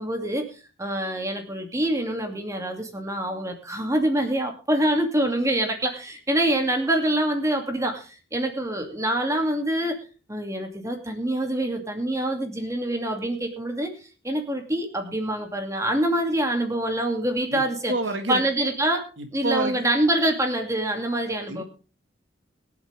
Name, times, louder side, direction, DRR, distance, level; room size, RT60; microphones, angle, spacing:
voice 1, 0.0-10.0 10.3-13.9 14.2-17.9 18.3-19.0 19.3-21.6, right 1 dB, 15° right, 4 dB, 2.5 m, -25 dB
voice 2, 17.9-18.4 19.2-19.8 21.5-21.6, right 2 dB, 80° right, 7 dB, 1.7 m, -28 dB
22.5 x 8.2 x 3.5 m, 0.34 s
head